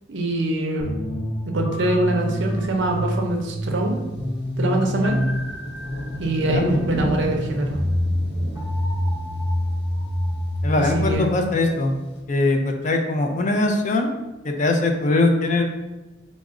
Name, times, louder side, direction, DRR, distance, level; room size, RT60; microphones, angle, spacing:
voice 1, 0.1-0.9 1.4-4.0 4.6-5.2 6.2-7.8 10.8-11.3, right 1 dB, 60° right, 2 dB, 0.6 m, -24 dB
sound 1, 0.8-11.1, left 1 dB, 10° right, 0.7 m, -27 dB
sound 2, 2.4-12.2, right 1 dB, 55° left, 0.9 m, -35 dB
voice 2, 10.6-11.9 12.3-14.1 14.4-15.6, left 2 dB, 40° left, 4 dB, 0.4 m, -21 dB
4.7 x 2.0 x 3.6 m, 1.1 s
head